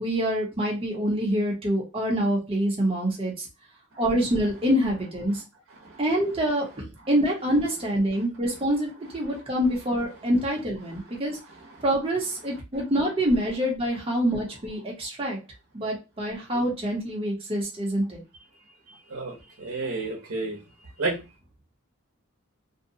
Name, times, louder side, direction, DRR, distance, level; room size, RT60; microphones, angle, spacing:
voice 1, 0.0-3.5 4.0-5.4 6.0-11.4 11.8-15.4 15.7-18.2, equal, 25° right, -1 dB, 0.8 m, -26 dB
voice 2, 18.9-20.6 21.0-21.2, right 3 dB, 80° right, -2 dB, 0.7 m, -32 dB
2.6 x 2.2 x 2.7 m, 0.28 s
head